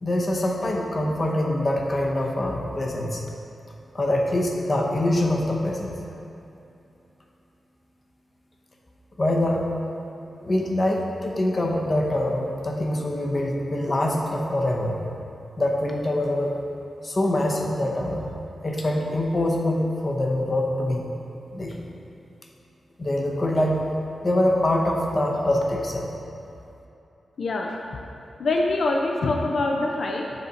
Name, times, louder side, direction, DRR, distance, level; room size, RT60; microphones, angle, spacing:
voice 1, 0.0-3.2 3.9-6.0 9.2-9.7 10.4-15.0 15.6-16.6 17.0-18.2 18.6-21.1 21.5-21.9 23.0-23.8 24.2-26.1, left 1 dB, 30° left, 0 dB, 0.8 m, -24 dB
voice 2, 27.4-27.8 28.4-30.4, left 2 dB, 60° left, 0 dB, 0.5 m, -24 dB
8.0 x 5.6 x 4.0 m, 2.8 s
wide cardioid pair, 150°, 0 cm